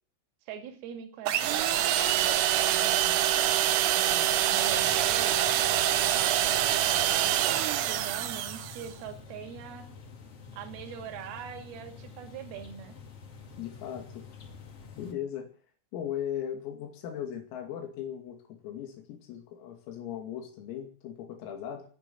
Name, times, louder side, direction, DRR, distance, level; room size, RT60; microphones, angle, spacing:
voice 1, 0.5-3.1 3.8-9.9 10.5-13.0, right 8 dB, 55° right, 6 dB, 3.9 m, -42 dB
sound 1, 1.3-8.9, right 12 dB, 80° right, 3.9 m, -25 dB
sound 2, 4.6-15.1, left 5 dB, 45° left, 2.2 m, -48 dB
voice 2, 13.6-14.3 15.0-15.5 15.9-21.8, left 9 dB, 85° left, 3 dB, 5.1 m, -38 dB
21.0 x 7.0 x 9.3 m, 0.43 s
omnidirectional pair, 5.9 m